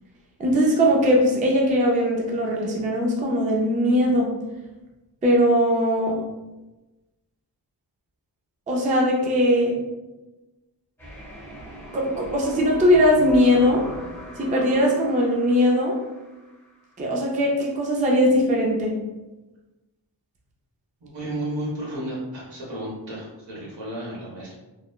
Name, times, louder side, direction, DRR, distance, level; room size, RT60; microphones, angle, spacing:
voice 1, 0.4-4.3 5.2-6.1 8.7-9.7 11.9-13.8 14.4-16.0 17.0-18.9, equal, 20° right, -2 dB, 0.3 m, -20 dB
sound 1, 11.0-16.9, equal, 5° left, 0.7 m, -40 dB
voice 2, 21.0-24.5, right 1 dB, 75° right, -5 dB, 1.1 m, -32 dB
3.0 x 2.0 x 2.2 m, 1.1 s
wide cardioid pair, 140°, 44 cm